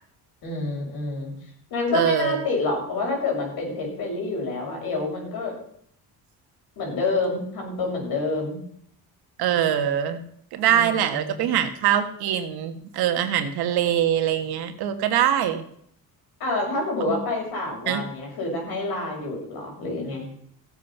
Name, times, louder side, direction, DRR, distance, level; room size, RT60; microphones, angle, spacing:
voice 1, 0.4-1.3 1.7-5.5 6.8-8.6 10.6-11.5 16.4-20.2, left 3 dB, 75° left, -1 dB, 6.6 m, -28 dB
voice 2, 1.9-2.4 9.4-10.2 10.5-15.6 17.9-18.0, right 10 dB, 85° right, 8 dB, 1.6 m, -23 dB
15.0 x 8.5 x 5.6 m, 0.66 s
cardioid pair, 110°, 37 cm